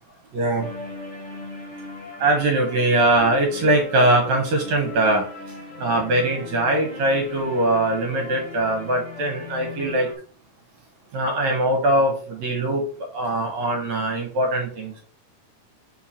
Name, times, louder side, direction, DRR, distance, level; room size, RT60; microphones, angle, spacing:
voice 1, 0.3-0.7 2.2-5.2 5.8-10.1 11.1-12.8 13.1-14.9, right 1 dB, 65° right, 2 dB, 2.1 m, -21 dB
sound 1, 0.6-10.1, left 3 dB, 20° left, 1.4 m, -38 dB
4.8 x 4.5 x 5.7 m, 0.43 s
omnidirectional pair, 4.1 m